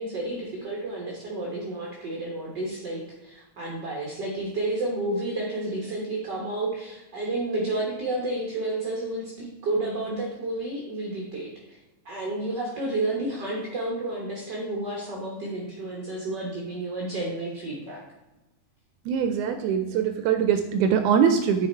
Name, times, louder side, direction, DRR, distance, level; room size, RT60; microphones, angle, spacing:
voice 1, 0.0-11.8 12.0-18.0, right 2 dB, 50° right, -3 dB, 1.3 m, -31 dB
voice 2, 19.1-21.7, right 7 dB, 80° right, 8 dB, 1.9 m, -22 dB
9.5 x 5.6 x 4.4 m, 1.0 s
omnidirectional pair, 3.7 m